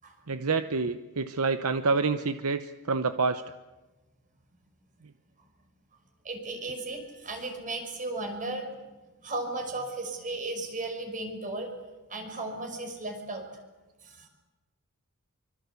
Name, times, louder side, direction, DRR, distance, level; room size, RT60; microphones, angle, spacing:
voice 1, 0.3-3.4, right 4 dB, 70° right, 10 dB, 0.8 m, -27 dB
voice 2, 6.2-8.7 9.2-11.7 12.1-13.4 14.0-14.3, right 2 dB, 35° right, 4 dB, 5.7 m, -35 dB
26.0 x 24.5 x 8.3 m, 1.2 s
head